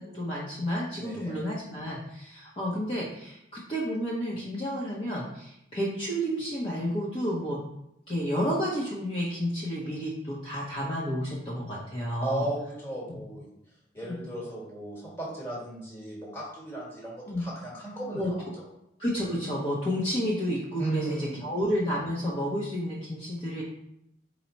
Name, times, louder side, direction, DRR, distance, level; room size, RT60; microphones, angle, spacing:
voice 1, 0.0-7.6 8.1-12.5 13.1-13.2 14.0-14.2 17.3-17.5 18.1-18.3 19.0-23.6, equal, 30° left, -7 dB, 0.6 m, -31 dB
voice 2, 1.0-1.4 12.2-13.5 13.9-18.2 20.8-21.5, right 1 dB, 15° left, -5 dB, 1.2 m, -35 dB
4.4 x 2.0 x 3.9 m, 0.80 s
head